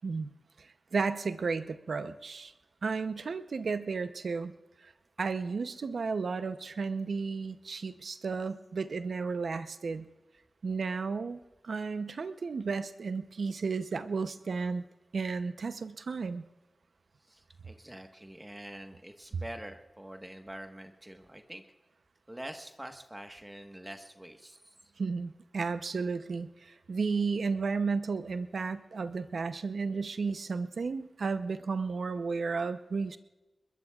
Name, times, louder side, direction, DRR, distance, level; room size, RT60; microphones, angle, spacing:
voice 1, 0.6-2.5 2.8-4.5 4.8-4.9 5.2-10.0 10.6-14.8 15.1-16.4 25.0-33.2, right 4 dB, 80° right, 11 dB, 0.7 m, -33 dB
voice 2, 17.2-21.6 22.3-24.7, right 1 dB, 20° right, 5 dB, 1.4 m, -45 dB
24.5 x 21.0 x 2.4 m, 1.1 s
cardioid pair, 40°, 0 cm